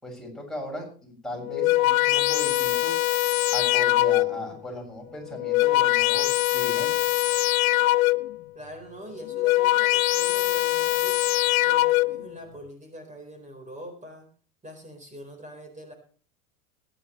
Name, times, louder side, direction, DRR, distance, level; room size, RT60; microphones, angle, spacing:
voice 1, 0.0-3.0 3.5-6.9, left 1 dB, ahead, -2 dB, 6.6 m, -37 dB
sound 1, 1.4-4.5 5.3-8.4 9.2-12.3, left 17 dB, 80° left, 0.6 m, -23 dB
voice 2, 8.5-11.2 11.7-14.3 14.6-15.9, right 1 dB, 20° right, 5 dB, 4.2 m, -43 dB
21.0 x 10.5 x 3.1 m, 0.41 s
hypercardioid pair, 95°, 41 cm